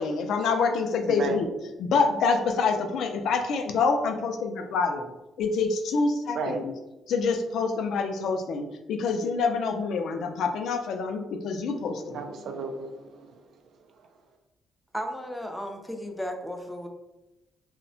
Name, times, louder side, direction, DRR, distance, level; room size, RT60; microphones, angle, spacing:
voice 1, 0.0-1.5 1.8-5.0 5.4-6.7 7.1-12.2, left 4 dB, 75° left, 0.3 m, -26 dB
voice 2, 1.1-1.4 6.3-6.7 12.0-13.4, right 4 dB, 70° right, 0.3 m, -34 dB
voice 3, 14.9-16.9, equal, 5° left, 0.4 m, -34 dB
2.7 x 2.1 x 2.6 m
cardioid pair, 90°, 0 cm